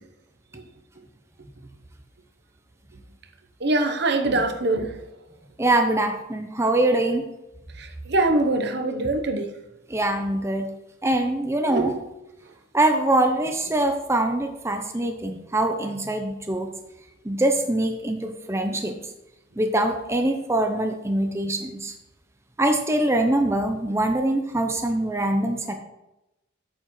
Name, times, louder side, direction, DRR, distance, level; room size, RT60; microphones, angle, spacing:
voice 1, 3.6-5.0 7.8-9.5 11.6-12.0, right 2 dB, 55° right, 5 dB, 0.8 m, -23 dB
voice 2, 5.6-7.2 9.9-10.7 11.0-11.9 12.7-16.7 17.2-19.0 19.6-21.9 22.6-25.7, right 1 dB, 15° right, 5 dB, 0.6 m, -23 dB
8.8 x 7.9 x 3.1 m, 0.93 s
head